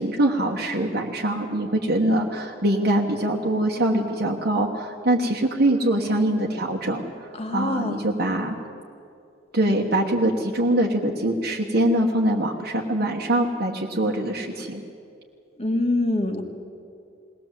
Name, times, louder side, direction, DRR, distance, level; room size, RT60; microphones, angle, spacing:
voice 1, 0.0-7.0 7.5-8.6 9.5-14.8, right 1 dB, 55° right, -1 dB, 1.4 m, -23 dB
voice 2, 7.4-8.0 15.6-16.4, left 2 dB, 35° left, 4 dB, 1.9 m, -24 dB
21.5 x 18.5 x 7.6 m, 2.5 s
head